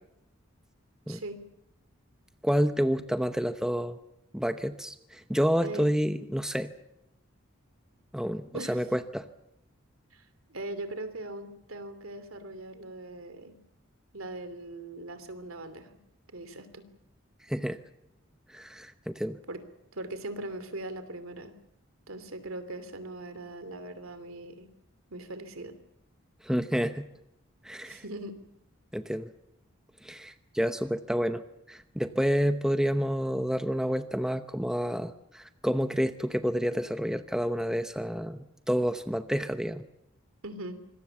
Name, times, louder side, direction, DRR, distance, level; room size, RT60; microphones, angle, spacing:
voice 1, 1.1-1.4 5.6-5.9 8.5-8.8 10.1-13.6 14.1-16.0 16.3-16.8 19.5-19.6 19.9-21.6 22.1-24.7 25.1-25.7 27.8-28.4 40.4-40.8, right 2 dB, 75° right, 11 dB, 2.8 m, -40 dB
voice 2, 2.4-4.0 4.3-6.7 8.1-9.3 17.5-17.8 18.5-19.4 26.4-27.1 27.6-28.0 28.9-29.3 30.0-31.4 31.7-39.9, equal, 5° right, 9 dB, 0.8 m, -29 dB
26.0 x 21.0 x 7.2 m, 0.83 s
head